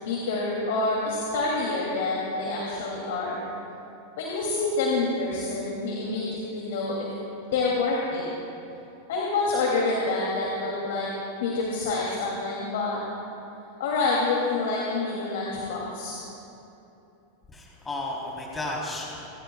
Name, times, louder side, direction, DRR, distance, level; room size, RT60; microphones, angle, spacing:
voice 1, 0.0-3.4 4.2-7.0 7.5-8.2 9.1-11.1 11.4-13.0 13.8-16.2, left 3 dB, 75° left, -4 dB, 2.8 m, -27 dB
voice 2, 17.5-19.3, left 2 dB, 15° left, -3 dB, 3.6 m, -33 dB
25.5 x 14.0 x 2.4 m, 2.9 s
hypercardioid pair, 125°, 0 cm